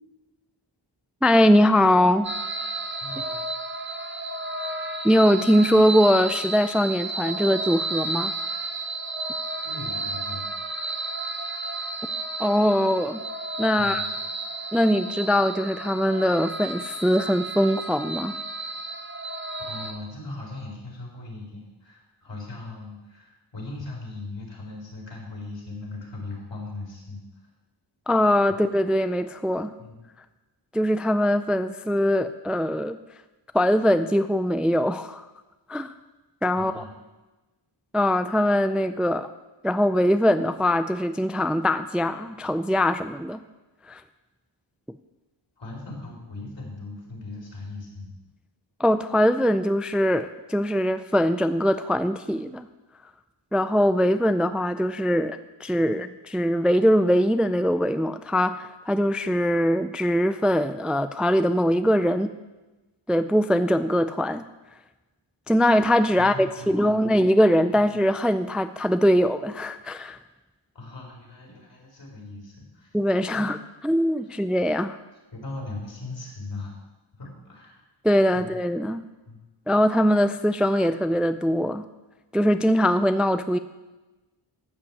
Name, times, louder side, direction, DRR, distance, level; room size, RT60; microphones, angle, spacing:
voice 1, 1.2-2.3 5.0-8.3 12.4-13.2 13.6-14.1 14.7-18.3 28.1-29.7 30.7-33.0 33.5-35.2 35.7-35.9 36.4-36.8 37.9-39.3 39.6-43.4 43.8-44.0 48.8-52.7 53.5-62.3 63.1-64.4 65.5-70.2 72.9-73.6 73.8-75.0 78.0-79.0 79.7-81.9 82.3-83.6, equal, ahead, 11 dB, 0.4 m, -22 dB
sound 1, 2.2-19.9, right 2 dB, 25° right, 1.3 m, -32 dB
voice 2, 3.0-3.4 9.6-10.5 13.8-14.1 19.7-27.2 28.5-28.6 29.8-30.0 36.6-36.9 45.6-48.2 66.2-67.2 67.7-67.8 70.7-73.0 73.3-73.5 75.3-76.7 77.1-77.8 78.3-78.5 79.3-79.4, left 2 dB, 65° left, -2 dB, 4.2 m, -39 dB
12.5 x 5.6 x 8.5 m, 1.1 s
wide cardioid pair, 75°, 46 cm